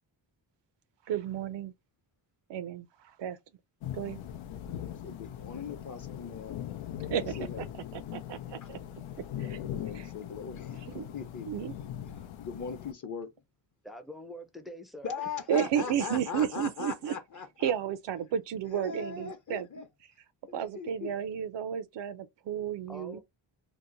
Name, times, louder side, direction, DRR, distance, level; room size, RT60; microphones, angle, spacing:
voice 1, 1.1-1.7 2.5-3.4 3.9-4.2 7.0-7.7 7.9-8.8 9.2-9.6 9.9-10.1 10.8-11.1 11.5-11.7 15.5-17.1 17.6-19.7 20.5-23.2, right 9 dB, 65° right, 0.5 m, -32 dB
sound 1, 3.8-12.9, left 11 dB, 90° left, 0.6 m, -40 dB
voice 2, 4.6-6.6 7.4-7.7 8.6-8.7 9.7-11.5 12.4-13.3 15.0-17.7 18.7-19.9 20.5-21.1, left 6 dB, 40° left, 0.8 m, -40 dB
voice 3, 13.8-15.3 16.1-16.4 22.9-23.2, equal, ahead, 0.4 m, -45 dB
2.8 x 2.0 x 3.8 m
cardioid pair, 105°, 46 cm